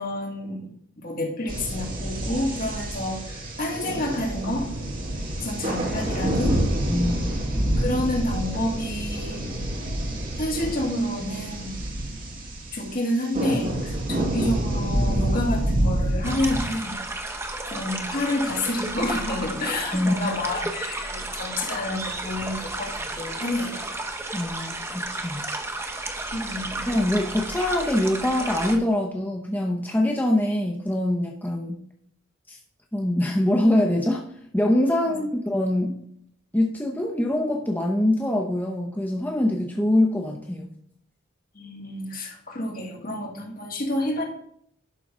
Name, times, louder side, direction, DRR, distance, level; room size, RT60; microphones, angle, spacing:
voice 1, 0.0-4.7 5.4-6.6 7.8-9.5 10.4-11.7 12.7-16.9 17.6-23.8 26.3-26.8 35.0-35.2 41.5-44.2, left 1 dB, 45° left, 0 dB, 2.1 m, -29 dB
sound 1, 1.5-16.8, right 1 dB, 45° right, 2.6 m, -28 dB
voice 2, 6.9-7.4 19.9-20.2 24.3-25.5 26.9-31.8 32.5-32.6 32.9-34.3 34.5-36.0 36.5-40.7, left 1 dB, 10° left, 1 dB, 0.7 m, -24 dB
sound 2, 16.2-28.8, right 2 dB, 15° right, 0.9 m, -33 dB
11.5 x 3.9 x 6.1 m, 0.68 s
head